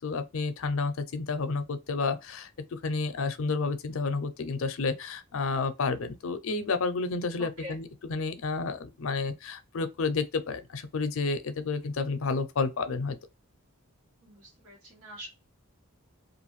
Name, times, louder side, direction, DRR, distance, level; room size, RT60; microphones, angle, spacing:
voice 1, 0.0-13.2, left 4 dB, 65° left, 0.5 m, -30 dB
voice 2, 7.4-7.8 14.2-15.3, equal, 80° right, 1.5 m, -44 dB
2.5 x 2.4 x 3.0 m
head